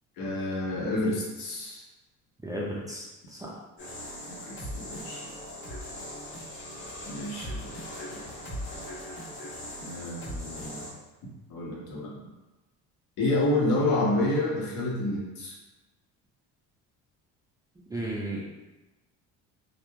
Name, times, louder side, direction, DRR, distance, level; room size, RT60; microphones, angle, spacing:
voice 1, 0.2-1.8 4.3-5.3 7.1-7.8 9.8-10.9 11.5-12.2 13.2-15.5, left 2 dB, 70° left, -4 dB, 1.0 m, -29 dB
voice 2, 2.4-3.0 3.4-3.5 17.9-18.6, right 1 dB, 10° right, -5 dB, 0.4 m, -33 dB
sound 1, 3.8-10.9, left 1 dB, 30° left, 1.3 m, -39 dB
2.8 x 2.4 x 2.2 m, 1.1 s
supercardioid pair, 95°, 36 cm